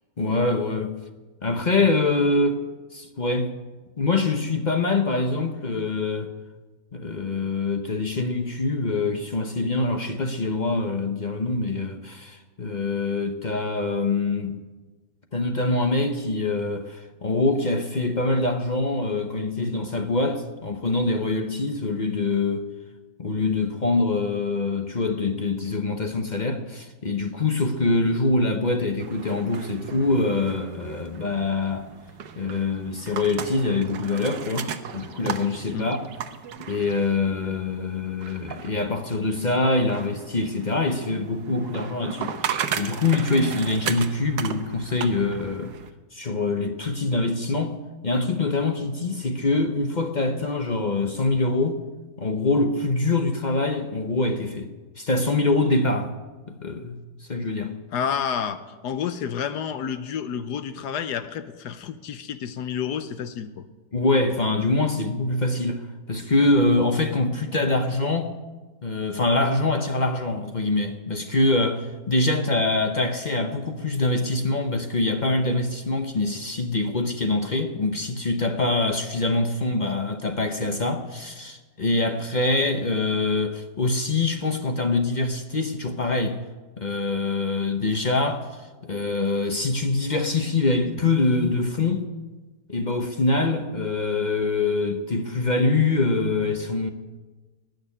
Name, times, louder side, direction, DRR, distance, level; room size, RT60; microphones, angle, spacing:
voice 1, 0.2-0.9 1.4-2.6 2.9-3.5 4.0-6.3 6.9-14.6 15.3-22.7 23.2-31.9 32.4-36.0 36.6-42.3 42.8-45.7 46.1-47.8 48.0-51.8 52.2-56.1 56.5-57.7 63.9-68.3 68.8-86.4 86.8-92.1 92.7-96.9, left 3 dB, 40° left, 0.7 m, -24 dB
sound 1, 29.0-45.9, right 8 dB, 85° right, 1.5 m, -36 dB
voice 2, 57.9-63.7, left 8 dB, 75° left, 1.3 m, -30 dB
19.5 x 6.6 x 9.7 m
omnidirectional pair, 1.8 m